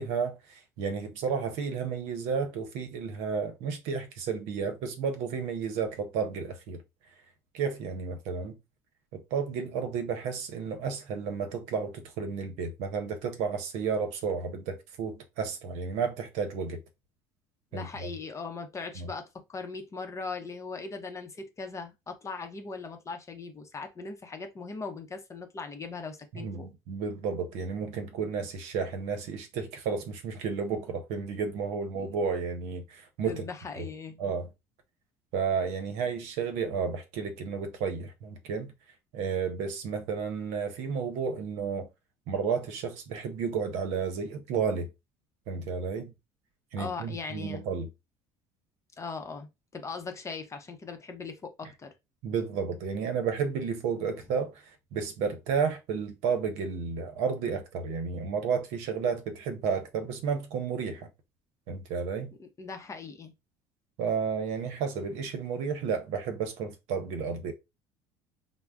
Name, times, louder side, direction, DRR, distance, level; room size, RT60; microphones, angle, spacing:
voice 1, 0.0-6.8 7.5-8.6 9.1-16.8 17.7-18.1 19.0-19.1 26.3-33.5 33.8-33.9 34.2-34.5 35.3-38.7 39.1-41.9 42.3-44.9 45.5-46.1 46.7-47.9 52.2-61.1 61.7-62.3 64.0-67.5, right 5 dB, 75° right, 0.7 m, -32 dB
voice 2, 17.7-26.7 31.9-32.1 33.2-34.2 46.8-47.6 49.0-51.9 62.4-63.3, left 4 dB, 25° left, 0.7 m, -39 dB
2.3 x 2.0 x 3.4 m
supercardioid pair, 95°, 11 cm